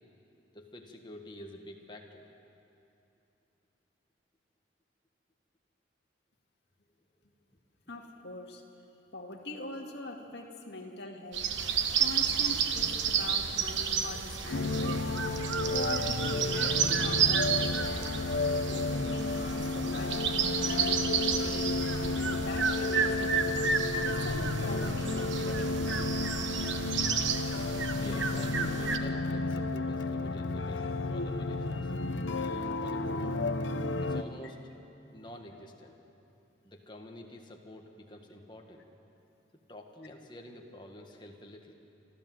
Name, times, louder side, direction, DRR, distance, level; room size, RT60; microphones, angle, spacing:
voice 1, 0.5-2.3 27.9-31.9 32.3-33.4 34.0-34.6 35.1-36.0 36.6-38.8 39.7-41.7, left 1 dB, 25° left, 2 dB, 1.6 m, -48 dB
voice 2, 7.9-8.6 9.1-11.4 12.0-15.2 15.7-18.2 18.5-20.4 20.7-21.8 22.1-23.5 23.9-26.0 32.4-32.6, left 1 dB, 65° left, 1 dB, 2.1 m, -42 dB
sound 1, 11.3-29.0, right 6 dB, 75° right, 1.2 m, -31 dB
sound 2, 14.5-34.2, left 2 dB, 80° left, 0.8 m, -32 dB
27.0 x 13.5 x 7.8 m, 2.8 s
head